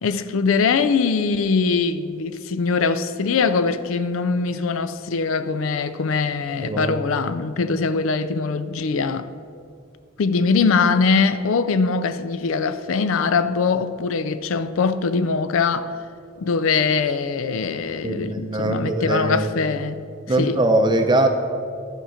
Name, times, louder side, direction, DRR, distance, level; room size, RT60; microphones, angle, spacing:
voice 1, 0.0-9.3 10.2-15.9 16.4-20.0 20.4-20.6, left 4 dB, 70° left, 0.4 m, -22 dB
voice 2, 6.6-7.0 18.0-19.5 20.3-21.3, right 1 dB, 20° right, 0.6 m, -21 dB
12.0 x 5.0 x 5.6 m
head